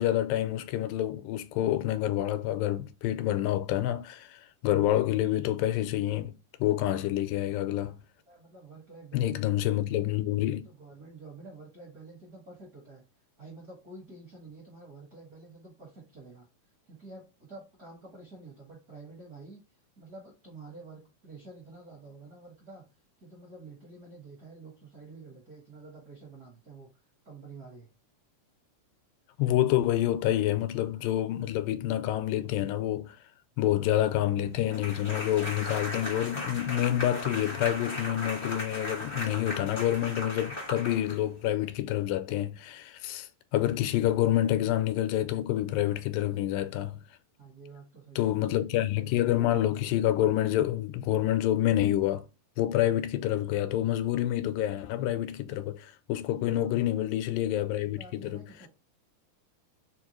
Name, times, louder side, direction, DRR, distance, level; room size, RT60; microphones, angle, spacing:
voice 1, 0.0-6.3 6.6-8.0 9.1-10.6 29.4-33.2 33.6-47.0 48.2-52.3 52.6-58.4, left 13 dB, 90° left, 2.2 m, -28 dB
voice 2, 8.3-10.2 10.6-13.0 13.4-16.5 16.9-19.6 20.0-22.8 23.2-26.9 27.2-27.9 47.4-48.5 56.5-56.8 57.7-58.7, right 3 dB, 55° right, 1.0 m, -49 dB
sound 1, 34.7-41.5, left 1 dB, 35° left, 0.4 m, -37 dB
5.1 x 2.3 x 2.9 m
omnidirectional pair, 3.8 m